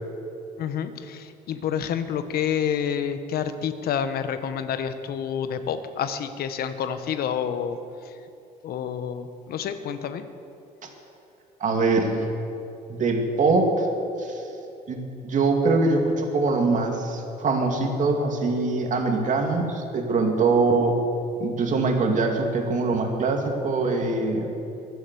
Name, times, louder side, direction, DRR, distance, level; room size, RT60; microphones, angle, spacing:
voice 1, 0.6-7.8 8.6-10.2, left 8 dB, 65° left, 10 dB, 1.1 m, -28 dB
voice 2, 11.6-12.2 12.9-13.9 14.2-14.4 14.9-21.0 21.4-24.5, right 3 dB, 50° right, 2 dB, 2.5 m, -23 dB
23.5 x 7.9 x 6.9 m, 2.8 s
cardioid pair, 110°, 17 cm